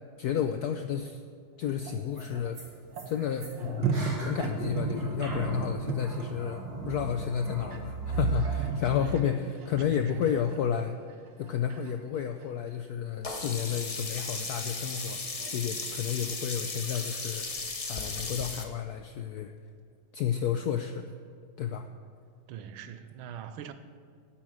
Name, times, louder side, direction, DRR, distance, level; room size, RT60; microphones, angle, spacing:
voice 1, 0.2-1.2 1.6-2.6 3.1-10.9 11.4-15.2 15.5-17.5 17.9-19.5 20.1-21.1 21.6-21.9, left 8 dB, 80° left, 0.8 m, -31 dB
sound 1, 1.6-6.3 6.8-7.0 7.7-12.9, right 6 dB, 65° right, 1.7 m, -36 dB
sound 2, 1.8-1.9 2.1-2.2 2.5-2.7 2.9-8.8, right 4 dB, 50° right, 3.3 m, -35 dB
voice 2, 8.7-9.2 9.8-10.5 22.5-23.7, right 9 dB, 85° right, 1.6 m, -42 dB
Sink (filling or washing), 13.2-18.6, left 3 dB, 40° left, 0.5 m, -36 dB
10.5 x 8.7 x 7.4 m
omnidirectional pair, 2.3 m